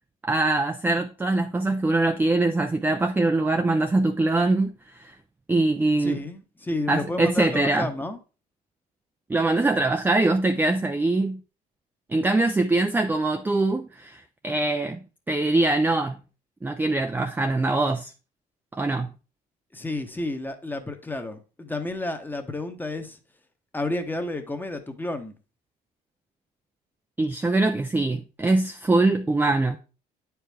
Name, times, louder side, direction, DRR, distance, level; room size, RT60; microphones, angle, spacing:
voice 1, 0.2-5.1 5.5-6.2 6.9-7.9 9.3-11.4 12.1-15.0 15.3-16.2 16.6-18.1 18.7-19.1 27.2-29.8, right 2 dB, 10° right, 0.4 m, -23 dB
voice 2, 6.0-8.2 19.7-23.2 23.7-25.3, left 2 dB, 10° left, 1.0 m, -31 dB
8.8 x 4.6 x 3.4 m
cardioid pair, 110°, 17 cm